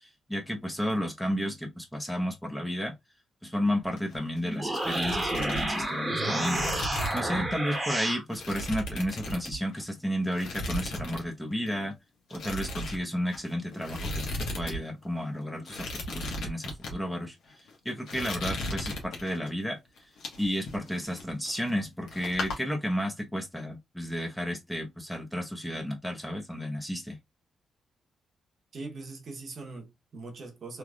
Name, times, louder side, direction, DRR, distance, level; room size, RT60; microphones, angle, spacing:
voice 1, 0.3-2.9 3.4-6.7 7.1-11.9 12.3-17.4 17.8-19.8 20.4-27.2, equal, 5° left, 0.9 m, -32 dB
sound 1, 3.8-4.4 4.6-7.4 7.7-7.9 8.3-9.9 10.3-11.3 11.5-11.7 12.3-14.8 15.0-15.1 15.6-16.9 17.5-17.7 18.1-19.5 20.0-21.8 22.1-22.6, left 1 dB, 80° left, 1.2 m, -36 dB
sound 2, 4.4-8.2, right 1 dB, 20° right, 1.1 m, -30 dB
voice 2, 28.7-30.8, right 3 dB, 50° right, 1.0 m, -41 dB
3.4 x 3.1 x 2.4 m
cardioid pair, 120°, 0 cm